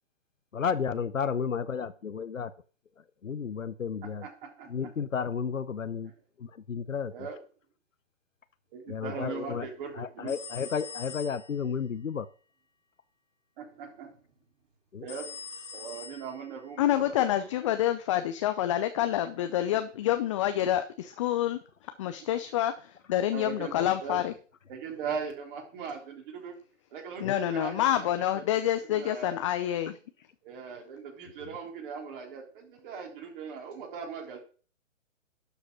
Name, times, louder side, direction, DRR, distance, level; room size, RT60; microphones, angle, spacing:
voice 1, 0.5-2.5 3.2-4.3 4.7-6.1 6.7-7.3 8.9-9.7 9.9-12.3 14.9-15.1 27.2-27.3, left 6 dB, 90° left, 12 dB, 0.8 m, -32 dB
voice 2, 4.2-4.9 7.1-7.4 8.7-10.3 13.6-14.2 15.0-15.3 15.7-17.2 23.3-24.2 24.7-26.5 26.9-28.1 28.9-29.4 30.4-34.4, right 6 dB, 40° right, 1 dB, 3.6 m, -39 dB
sound 1, 10.3-11.6 15.1-16.7, left 5 dB, 70° left, 2.7 m, -43 dB
voice 3, 16.8-24.3 27.2-30.0, left 12 dB, 25° left, 9 dB, 0.5 m, -28 dB
11.5 x 4.9 x 6.2 m, 0.40 s
figure-of-eight pair, 125°, 38 cm